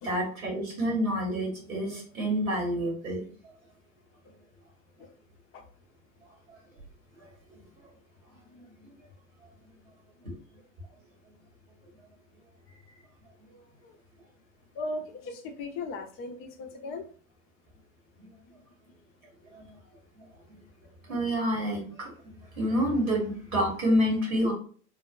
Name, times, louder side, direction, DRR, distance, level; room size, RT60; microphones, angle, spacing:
voice 1, 0.0-3.3 6.5-6.6 7.2-7.3 8.8-8.9 18.2-18.3 19.5-19.7 21.1-22.1 22.6-24.5, equal, 80° right, -2 dB, 1.4 m, -28 dB
voice 2, 14.7-17.1, left 2 dB, 35° left, 5 dB, 0.4 m, -37 dB
3.4 x 2.1 x 2.3 m, 0.44 s
figure-of-eight pair, 75°, 42 cm